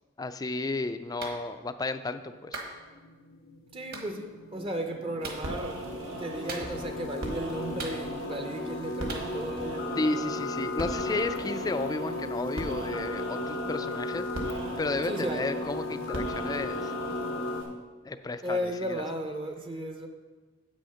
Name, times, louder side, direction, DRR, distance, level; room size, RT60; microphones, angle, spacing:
voice 1, 0.2-2.6 10.0-16.9 18.0-19.0, left 2 dB, 20° left, 0.3 m, -33 dB
Clapping, 1.2-1.4 2.5-2.7 3.9-4.1 5.2-5.4 6.5-6.9 7.8-8.4 9.1-9.3, right 3 dB, 50° right, 1.3 m, -39 dB
sound 1, 2.6-17.6, left 2 dB, 90° left, 0.8 m, -36 dB
voice 2, 3.7-5.9 6.2-10.1 15.1-15.4 18.4-20.1, equal, 25° right, 0.6 m, -35 dB
sound 2, 5.2-17.7, right 2 dB, 80° right, 1.5 m, -40 dB
7.9 x 6.3 x 5.7 m
head